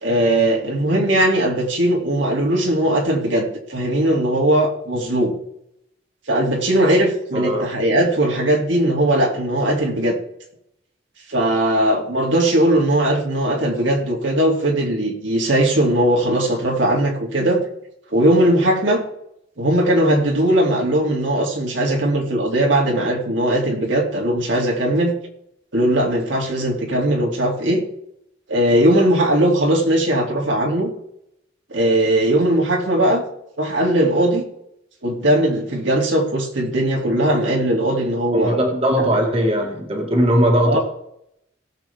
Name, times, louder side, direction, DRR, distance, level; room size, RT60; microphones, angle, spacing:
voice 1, 0.0-5.3 6.3-10.2 11.3-17.6 18.1-19.0 19.6-25.1 25.7-27.8 28.5-30.9 31.7-33.2 33.6-34.4 35.0-38.6 39.0-39.1 40.6-40.8, right 1 dB, 80° right, 0 dB, 2.7 m, -19 dB
voice 2, 7.3-7.7 38.3-40.8, equal, 30° right, 1 dB, 1.8 m, -19 dB
17.5 x 7.6 x 3.5 m, 0.76 s
head